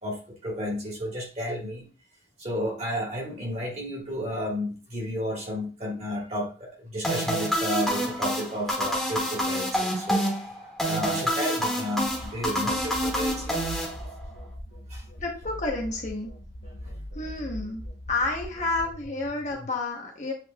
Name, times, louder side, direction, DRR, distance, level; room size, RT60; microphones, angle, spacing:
voice 1, 0.0-1.9 2.4-10.2 10.6-13.6 14.9-15.0, equal, 35° right, 0 dB, 1.5 m, -32 dB
sound 1, 7.0-14.4, equal, ahead, 1.1 m, -28 dB
sound 2, 12.1-19.7, equal, 70° left, 0.8 m, -41 dB
voice 2, 15.2-16.3 17.1-17.8 18.1-20.3, left 2 dB, 40° left, 0 dB, 1.0 m, -30 dB
7.5 x 3.1 x 2.2 m, 0.36 s
head